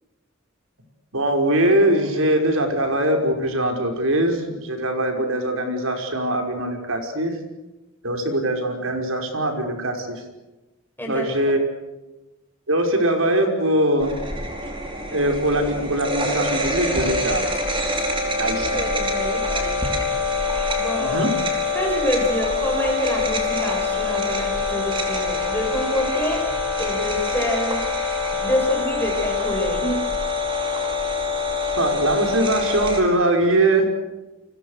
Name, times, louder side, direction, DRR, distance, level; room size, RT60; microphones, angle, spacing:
voice 1, 1.1-7.4 8.0-10.2 11.1-11.6 12.7-14.1 15.1-17.5 18.4-18.8 21.0-21.3 31.8-33.9, right 1 dB, 80° right, 4 dB, 5.6 m, -22 dB
sound 1, 14.0-33.0, left 3 dB, 25° right, 4.8 m, -25 dB
voice 2, 18.5-19.7 20.8-21.3 21.7-27.9 28.4-30.1, left 1 dB, 10° left, 0 dB, 7.7 m, -27 dB
30.0 x 24.5 x 6.7 m, 1.1 s
head